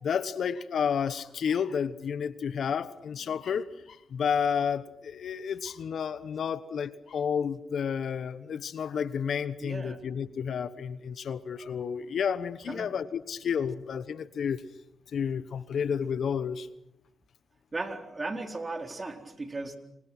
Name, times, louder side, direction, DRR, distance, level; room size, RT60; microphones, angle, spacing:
voice 1, 0.0-14.6 15.1-16.7, left 7 dB, 65° left, 16 dB, 1.2 m, -31 dB
voice 2, 9.6-10.0 12.7-12.9 17.7-19.8, right 3 dB, 30° right, 7 dB, 4.1 m, -36 dB
30.0 x 25.0 x 6.1 m, 0.81 s
supercardioid pair, 55°, 0 cm